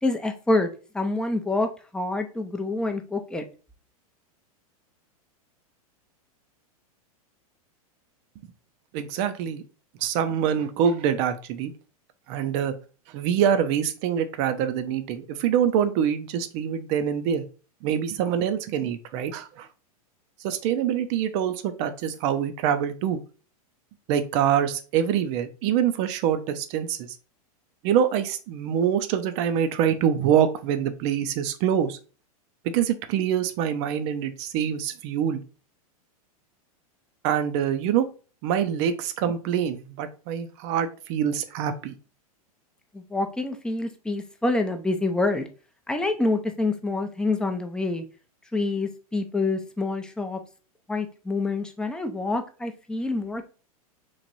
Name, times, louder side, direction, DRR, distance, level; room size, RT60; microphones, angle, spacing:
voice 1, 0.0-0.7 0.9-3.5 42.9-45.4 45.9-48.0 48.5-50.4 50.9-53.4, left 2 dB, 5° left, 5 dB, 0.5 m, -27 dB
voice 2, 8.9-9.6 10.0-11.7 12.3-12.7 13.1-17.5 17.8-19.7 20.4-23.2 24.1-27.1 27.8-32.0 32.7-35.4 37.2-38.1 38.4-42.0, right 9 dB, 50° right, 9 dB, 0.6 m, -25 dB
3.1 x 2.5 x 4.0 m, 0.36 s
hypercardioid pair, 110°, 19 cm